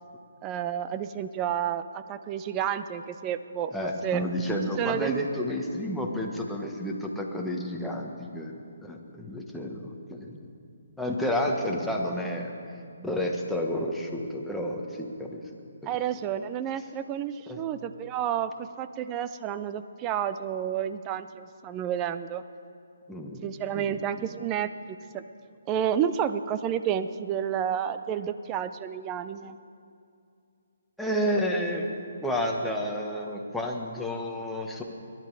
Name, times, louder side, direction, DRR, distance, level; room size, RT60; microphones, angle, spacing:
voice 1, 0.4-4.2 4.8-5.2 15.9-22.4 23.4-25.2 25.7-29.6, right 9 dB, 20° right, 12 dB, 0.5 m, -30 dB
voice 2, 3.7-8.5 8.8-10.4 11.0-12.5 13.0-15.4 15.8-15.9 17.5-17.6 23.1-23.5 23.7-24.3 31.0-31.9 32.2-34.8, equal, ahead, -1 dB, 1.3 m, -31 dB
22.0 x 11.0 x 4.8 m, 2.5 s
hypercardioid pair, 150°, 0 cm